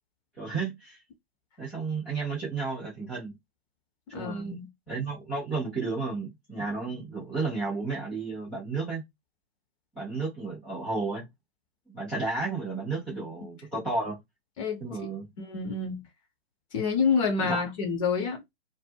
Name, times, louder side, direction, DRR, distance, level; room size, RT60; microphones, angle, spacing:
voice 1, 0.4-1.0 1.6-3.4 4.1-4.6 4.9-9.0 9.9-11.3 11.9-14.2 14.8-15.3 17.4-17.6, right 3 dB, 5° left, 0.3 m, -32 dB
voice 2, 4.1-4.6 13.1-13.2 14.6-14.8 15.4-16.0 16.7-18.5, left 5 dB, 30° left, 0.7 m, -28 dB
2.1 x 2.0 x 3.2 m
figure-of-eight pair, 125°, 31 cm